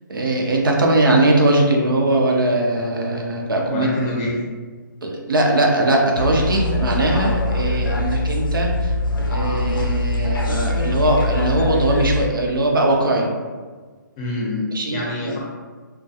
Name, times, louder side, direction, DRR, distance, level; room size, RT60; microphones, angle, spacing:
voice 1, 0.1-3.9 5.0-13.3 14.7-15.4, right 1 dB, 90° right, 0 dB, 0.6 m, -20 dB
voice 2, 3.7-4.4 14.2-15.4, left 2 dB, 20° left, -4 dB, 0.6 m, -26 dB
sound 1, 6.2-12.3, left 1 dB, 90° left, 0.4 m, -22 dB
2.2 x 2.2 x 2.6 m, 1.5 s
hypercardioid pair, 155°, 11 cm